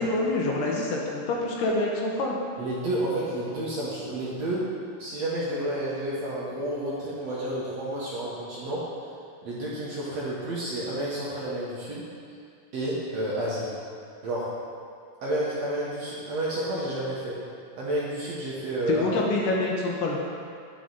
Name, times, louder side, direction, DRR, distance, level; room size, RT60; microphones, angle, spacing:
voice 1, 0.0-2.4 18.9-20.2, left 2 dB, 75° left, -2 dB, 2.4 m, -26 dB
voice 2, 2.6-4.7 5.0-8.8 9.4-12.0 12.7-13.7 14.2-14.5 15.2-17.4 17.8-19.1, right 1 dB, 60° right, -7 dB, 1.9 m, -30 dB
9.9 x 6.3 x 4.0 m, 2.3 s
omnidirectional pair, 4.1 m